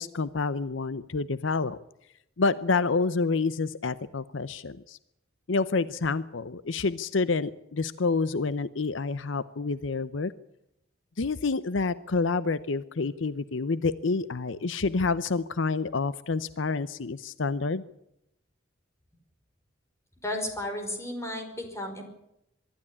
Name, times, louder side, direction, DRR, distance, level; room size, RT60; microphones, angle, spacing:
voice 1, 0.0-1.8 2.4-5.0 5.5-10.3 11.2-17.8, left 4 dB, 75° left, 16 dB, 0.7 m, -28 dB
voice 2, 20.2-22.0, left 1 dB, 15° left, 4 dB, 5.0 m, -33 dB
24.0 x 12.5 x 9.8 m, 0.81 s
head